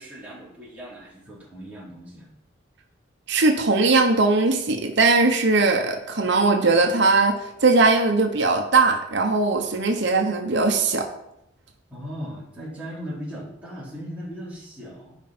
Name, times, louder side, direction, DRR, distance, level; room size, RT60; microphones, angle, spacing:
voice 1, 0.0-2.3 11.9-15.2, equal, 5° right, -8 dB, 3.5 m, -38 dB
voice 2, 3.3-11.1, right 3 dB, 60° right, 3 dB, 1.0 m, -20 dB
12.5 x 5.3 x 4.4 m, 0.80 s
head